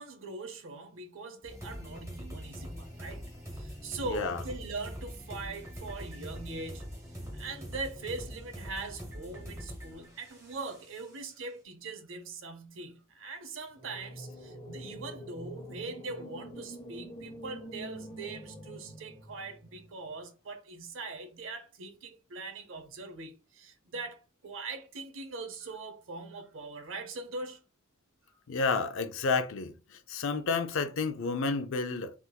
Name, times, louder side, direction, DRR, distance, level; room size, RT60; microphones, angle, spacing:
voice 1, 0.0-6.9 7.3-27.6, right 3 dB, 65° right, 0.7 m, -41 dB
sound 1, 1.4-11.3, equal, 15° right, 1.2 m, -43 dB
voice 2, 4.1-4.4 28.5-29.7 30.1-32.1, left 4 dB, 65° left, 0.5 m, -30 dB
sound 2, 13.7-19.9, equal, 25° left, 0.8 m, -46 dB
3.5 x 2.9 x 2.2 m
head